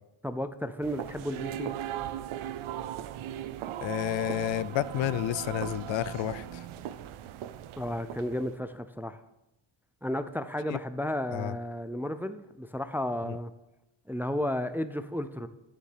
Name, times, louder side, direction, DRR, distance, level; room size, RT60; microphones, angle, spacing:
voice 1, 0.2-1.7 7.8-9.2 10.0-13.5 14.1-15.5, left 1 dB, 5° right, 0.4 m, -33 dB
sound 1, 0.8-8.6, right 11 dB, 85° right, 0.7 m, -38 dB
voice 2, 3.8-6.7 10.7-10.8 11.3-11.6 13.2-13.4, left 13 dB, 70° left, 0.5 m, -31 dB
9.4 x 6.8 x 7.3 m
cardioid pair, 120°, 48 cm